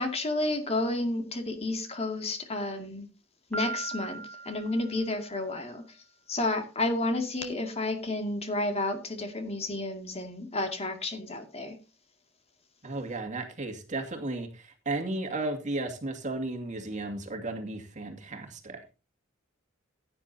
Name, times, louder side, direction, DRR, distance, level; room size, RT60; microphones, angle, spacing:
voice 1, 0.0-3.1 3.5-5.8 6.3-11.8, left 2 dB, 30° left, 6 dB, 2.3 m, -31 dB
Piano, 3.5-5.4, right 3 dB, 5° left, 4.5 m, -38 dB
voice 2, 12.8-18.8, right 2 dB, 40° right, 4 dB, 2.3 m, -34 dB
16.5 x 9.9 x 2.8 m, 0.30 s
head